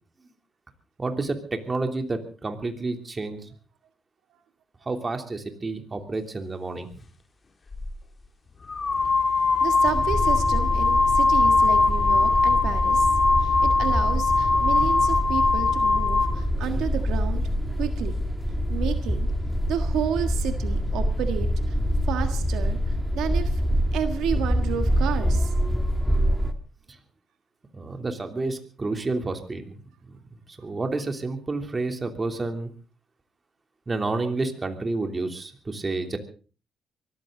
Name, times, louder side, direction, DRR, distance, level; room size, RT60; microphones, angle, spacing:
voice 1, 1.0-3.4 4.8-6.9 27.7-29.7 30.1-30.2 30.5-32.7 33.9-36.2, right 3 dB, 25° right, 5 dB, 3.1 m, -30 dB
sound 1, 7.7-7.9 8.7-16.4, left 3 dB, 35° left, 1.7 m, -21 dB
voice 2, 9.6-13.1 13.4-17.4 17.8-18.2 18.7-19.3 19.7-21.5 22.1-22.8 23.1-23.6 23.9-25.5, right 9 dB, 85° right, 7 dB, 1.6 m, -31 dB
sound 2, 9.8-26.5, equal, ahead, 2.1 m, -25 dB
23.5 x 14.5 x 3.9 m, 0.38 s
cardioid pair, 90°, 0 cm